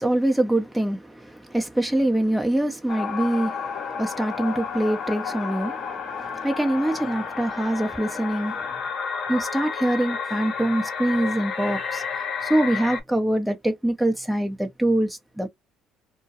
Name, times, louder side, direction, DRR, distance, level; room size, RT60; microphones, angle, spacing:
voice 1, 0.0-8.7 9.3-15.5, right 1 dB, 5° right, 0.8 m, -24 dB
sound 1, 2.9-13.0, left 6 dB, 55° left, 0.8 m, -31 dB
2.2 x 2.2 x 2.8 m
hypercardioid pair, 65°, 0 cm